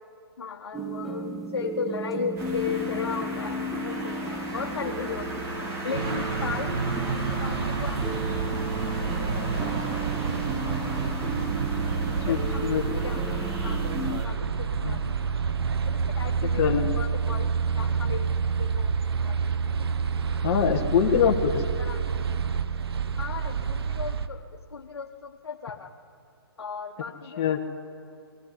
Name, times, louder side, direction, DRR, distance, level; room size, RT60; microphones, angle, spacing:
voice 1, 0.4-5.5 5.8-8.6 10.6-10.7 12.1-13.8 14.2-15.3 15.8-17.5 17.8-18.9 19.2-19.7 21.2-21.4 21.7-22.0 23.2-25.9 26.6-27.6, left 6 dB, 80° left, 1 dB, 1.3 m, -36 dB
sound 1, 0.7-14.2, right 1 dB, ahead, 1.0 m, -34 dB
sound 2, 2.4-14.3, right 1 dB, 20° right, 2.5 m, -37 dB
sound 3, 5.9-24.3, right 6 dB, 70° right, 1.0 m, -28 dB
voice 2, 12.3-12.8 14.8-15.0 16.6-16.9 20.4-21.5 27.4-27.6, left 8 dB, 30° left, 2 dB, 1.5 m, -23 dB
20.5 x 14.0 x 10.0 m, 2.5 s
hypercardioid pair, 145°, 13 cm